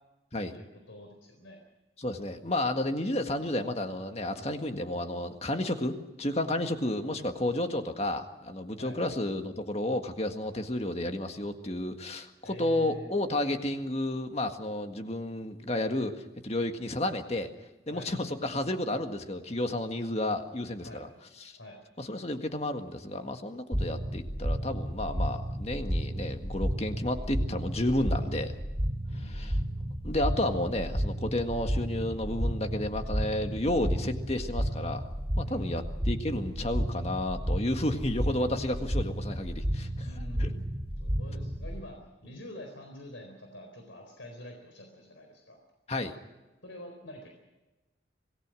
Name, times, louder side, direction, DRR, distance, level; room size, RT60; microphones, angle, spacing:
voice 1, 0.5-1.6 8.8-9.0 12.4-13.2 17.9-18.1 20.8-21.0 21.6-21.8 29.1-29.8 35.4-35.7 40.0-40.7 41.0-45.6 46.6-47.3, left 1 dB, 85° left, 3 dB, 4.3 m, -46 dB
voice 2, 2.0-17.5 17.9-21.1 21.4-21.6 22.0-28.6 29.3-29.5 30.0-35.0 35.4-40.1 40.4-40.5 45.9-46.2, left 1 dB, 35° left, 6 dB, 1.7 m, -31 dB
sound 1, 23.7-41.8, equal, 35° right, 3.1 m, -32 dB
26.5 x 19.0 x 6.3 m, 1.1 s
head